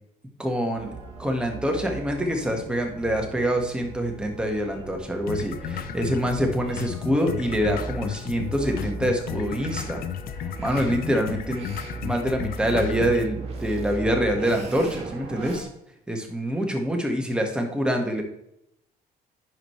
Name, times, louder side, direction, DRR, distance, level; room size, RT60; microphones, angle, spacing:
voice 1, 0.4-0.9 1.2-10.0 10.4-15.7 16.1-18.2, equal, 5° right, 2 dB, 1.5 m, -25 dB
sound 1, 0.8-15.6, right 3 dB, 35° right, 2.2 m, -38 dB
sound 2, 5.3-13.3, left 10 dB, 60° left, 0.5 m, -34 dB
10.5 x 5.0 x 3.2 m, 0.78 s
cardioid pair, 110°, 17 cm